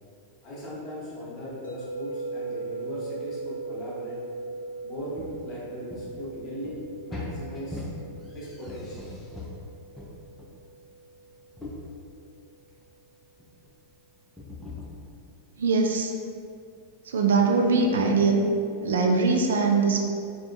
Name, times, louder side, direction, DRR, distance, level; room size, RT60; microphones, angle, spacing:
voice 1, 0.4-4.2 4.8-7.9 8.3-9.1, equal, 30° left, -7 dB, 0.9 m, -38 dB
sound 1, 1.6-11.7, right 3 dB, 60° left, 0.6 m, -39 dB
sound 2, 5.2-5.5 5.9-9.7 9.9-10.8 11.2-11.9 12.7-13.0 13.4-13.7 14.4-14.9, left 2 dB, 5° left, 0.4 m, -40 dB
voice 2, 15.6-16.1 17.0-18.4 18.8-20.1, right 4 dB, 65° right, 2 dB, 0.3 m, -22 dB
3.5 x 2.1 x 2.4 m, 2.4 s
figure-of-eight pair, 90°, 0 cm